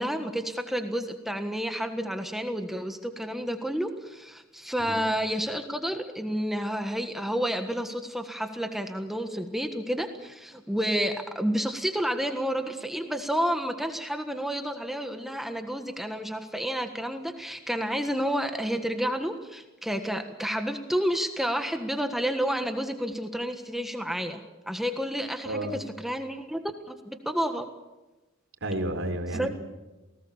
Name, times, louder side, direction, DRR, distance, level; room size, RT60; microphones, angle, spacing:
voice 1, 0.0-24.4 24.7-26.6 26.9-27.7 29.3-29.5, equal, ahead, 6 dB, 1.5 m, -30 dB
voice 2, 25.5-25.8 28.6-29.5, right 1 dB, 65° right, 6 dB, 3.8 m, -31 dB
29.0 x 18.5 x 7.3 m, 1.1 s
head